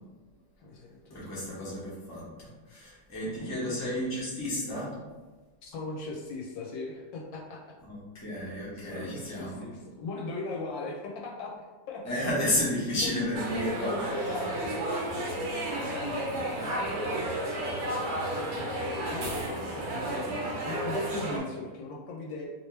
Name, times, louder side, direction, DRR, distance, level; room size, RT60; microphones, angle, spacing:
voice 1, 0.6-1.5 3.2-3.8 5.6-7.6 8.4-8.5 8.8-12.0 13.0-13.1 13.6-22.5, left 3 dB, 75° left, -1 dB, 1.2 m, -39 dB
voice 2, 1.1-4.9 7.8-9.6 12.0-14.3 15.7-16.1, left 1 dB, 15° left, -8 dB, 0.7 m, -32 dB
sound 1, 13.3-21.4, right 1 dB, 65° right, 1.1 m, -32 dB
3.2 x 2.8 x 3.2 m, 1.3 s
omnidirectional pair, 2.1 m